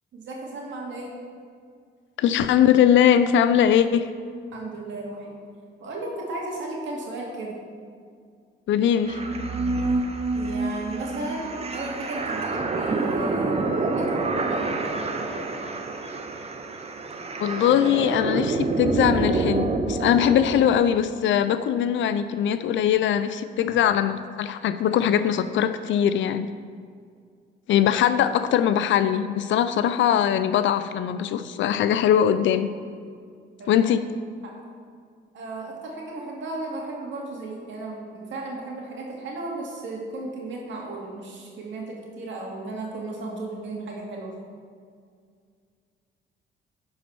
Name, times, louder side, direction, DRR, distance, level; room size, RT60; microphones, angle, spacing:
voice 1, 0.1-1.1 4.5-5.3 5.8-7.6 10.3-15.6 33.6-33.8 34.4-34.5 35.3-44.3, right 2 dB, 70° right, -2 dB, 2.4 m, -35 dB
voice 2, 2.2-4.1 8.7-9.2 17.4-26.5 27.7-32.7 33.7-34.0, left 9 dB, 70° left, 11 dB, 0.4 m, -21 dB
sound 1, 9.0-20.8, right 3 dB, 30° right, 0.8 m, -27 dB
10.5 x 4.7 x 5.9 m, 2.2 s
cardioid pair, 90°, 20 cm